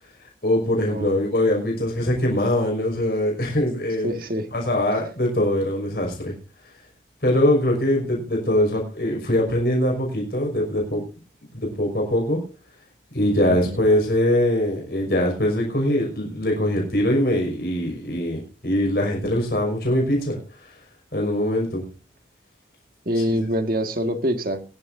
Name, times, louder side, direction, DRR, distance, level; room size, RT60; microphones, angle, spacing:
voice 1, 0.4-4.1 4.5-6.3 7.2-11.0 11.6-12.4 13.1-20.4 21.1-21.8, left 1 dB, 55° left, 0 dB, 5.7 m, -22 dB
voice 2, 4.0-4.5 13.5-13.8 23.1-24.6, equal, 50° right, 7 dB, 1.8 m, -25 dB
22.5 x 11.5 x 2.7 m, 0.32 s
head